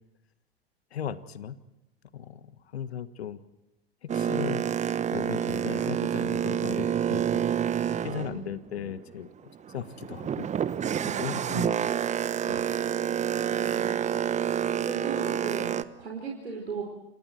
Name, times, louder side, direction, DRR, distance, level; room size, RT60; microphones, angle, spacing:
voice 1, 0.9-1.6 2.1-3.4 4.0-4.6 5.1-7.4 8.0-9.3 9.7-10.5 11.2-11.9 12.5-12.7, left 8 dB, 75° left, 13 dB, 1.6 m, -37 dB
Boat Water vehicle, 4.1-9.1 9.6-15.8, right 9 dB, 20° right, 1.0 m, -28 dB
voice 2, 8.1-8.5 11.0-11.7 13.4-14.0 14.8-16.8, right 5 dB, 85° right, 0 dB, 4.5 m, -38 dB
28.5 x 28.0 x 4.5 m, 0.91 s
hypercardioid pair, 95°, 32 cm